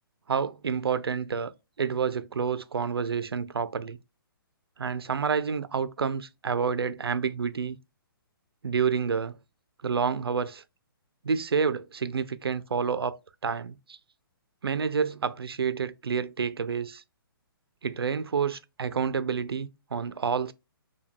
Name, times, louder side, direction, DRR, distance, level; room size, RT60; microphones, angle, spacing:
voice 1, 0.3-1.5 1.8-4.0 4.8-7.8 8.6-9.4 9.8-10.6 11.2-14.0 14.6-17.0 17.8-20.5, right 6 dB, 80° right, 0.5 m, -29 dB
4.9 x 2.2 x 3.7 m
figure-of-eight pair, 135°, 12 cm